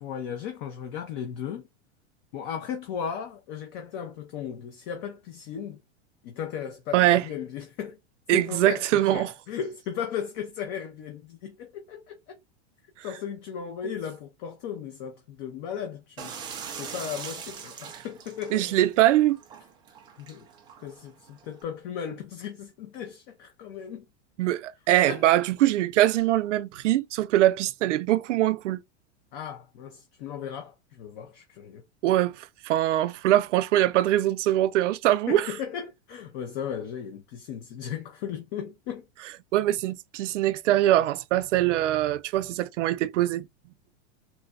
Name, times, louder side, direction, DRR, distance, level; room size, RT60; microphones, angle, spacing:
voice 1, 0.0-1.7 2.3-5.8 6.2-8.0 8.3-12.4 13.0-18.7 20.2-20.5 20.8-24.1 25.1-25.2 29.3-31.8 35.3-39.1, left 8 dB, 40° left, 0.7 m, -36 dB
voice 2, 6.9-7.2 8.3-9.3 18.5-19.4 24.4-28.8 32.0-35.5 39.5-43.5, right 14 dB, 85° right, 0.5 m, -23 dB
sound 1, 16.2-21.6, right 7 dB, 15° right, 0.3 m, -42 dB
4.0 x 2.2 x 2.2 m
supercardioid pair, 155°, 35 cm